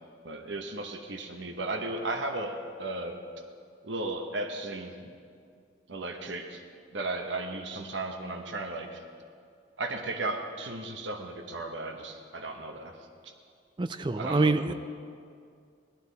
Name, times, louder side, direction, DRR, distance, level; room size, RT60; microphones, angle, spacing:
voice 1, 0.2-3.2 3.8-5.1 5.9-6.6 6.9-9.0 9.8-13.0 14.2-14.7, right 2 dB, 80° right, 4 dB, 1.0 m, -35 dB
voice 2, 13.8-14.7, right 3 dB, 25° right, 10 dB, 0.4 m, -26 dB
19.0 x 11.5 x 4.1 m, 2.3 s
head